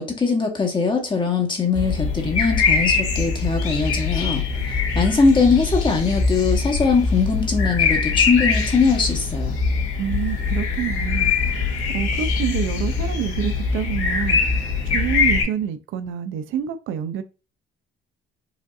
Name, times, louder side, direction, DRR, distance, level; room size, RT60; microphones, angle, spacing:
voice 1, 0.0-9.5, left 4 dB, 20° left, 0.9 m, -21 dB
sound 1, 1.7-15.4, left 4 dB, 80° left, 1.5 m, -22 dB
voice 2, 10.0-17.2, right 9 dB, 70° right, 0.5 m, -28 dB
4.9 x 2.6 x 2.3 m
cardioid pair, 125°, 21 cm